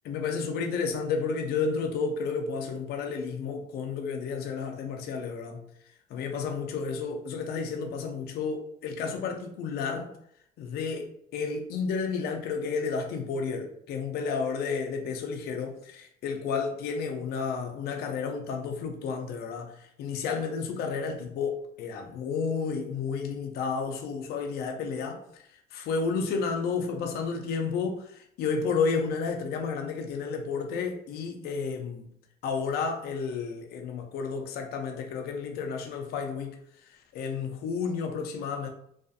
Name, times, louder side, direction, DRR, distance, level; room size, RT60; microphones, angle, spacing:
voice 1, 0.0-5.6 6.1-10.1 10.6-11.1 11.3-19.7 20.0-25.4 25.7-32.0 32.4-36.6 37.1-38.7, left 5 dB, 70° left, 0.5 m, -31 dB
2.4 x 2.4 x 2.4 m
cardioid pair, 110°, 17 cm